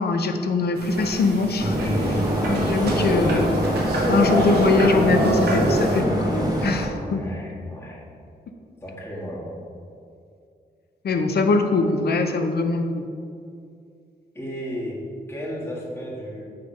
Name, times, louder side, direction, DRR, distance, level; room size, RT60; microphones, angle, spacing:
voice 1, 0.0-1.8 2.4-3.6 4.1-7.2 11.0-13.0, left 3 dB, 70° left, 5 dB, 0.7 m, -22 dB
sound 1, 0.8-6.0, right 1 dB, 75° right, 1.2 m, -26 dB
sound 2, 1.6-6.9, right 1 dB, 20° right, 1.2 m, -24 dB
voice 2, 1.7-3.1 7.0-8.0 8.8-9.5 14.3-15.0 15.3-16.5, equal, 15° left, -6 dB, 1.6 m, -34 dB
8.1 x 3.4 x 5.1 m, 2.4 s
wide cardioid pair, 105°, 17 cm